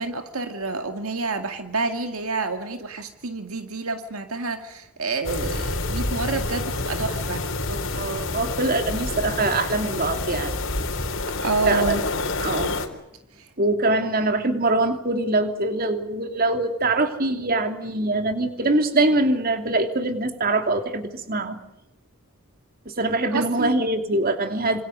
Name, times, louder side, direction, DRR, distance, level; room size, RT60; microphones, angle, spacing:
voice 1, 0.0-7.4 11.4-12.0 13.4-13.5 23.3-23.8, right 3 dB, 75° right, 7 dB, 2.2 m, -28 dB
sound 1, 5.2-12.9, left 2 dB, 60° left, 3.8 m, -28 dB
voice 2, 7.7-10.6 11.6-12.0 12.4-12.9 13.6-21.6 22.8-24.8, right 2 dB, 40° right, 7 dB, 3.0 m, -23 dB
27.0 x 26.5 x 6.6 m, 0.88 s
head